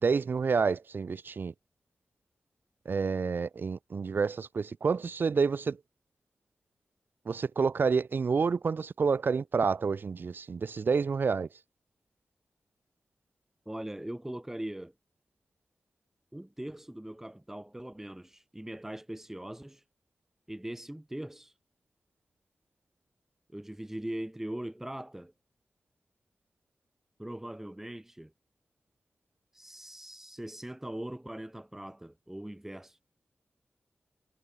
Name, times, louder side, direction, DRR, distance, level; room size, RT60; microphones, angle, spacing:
voice 1, 0.0-1.5 2.8-5.8 7.3-11.5, right 5 dB, 60° right, 3.1 m, -28 dB
voice 2, 13.7-14.9 16.3-19.8 20.5-21.5 23.5-25.3 27.2-28.3 29.5-33.1, right 1 dB, 10° right, 7.8 m, -41 dB
wide cardioid pair, 105°, 4 cm